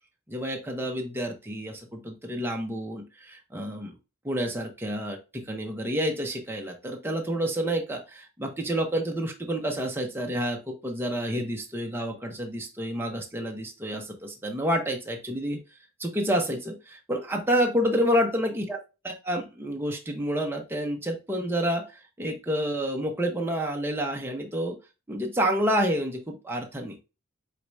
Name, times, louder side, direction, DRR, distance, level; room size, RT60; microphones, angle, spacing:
voice 1, 0.3-3.9 4.2-15.6 16.0-24.8 25.1-27.0, equal, 10° right, 1 dB, 0.8 m, -29 dB
4.8 x 4.1 x 2.3 m, 0.28 s
head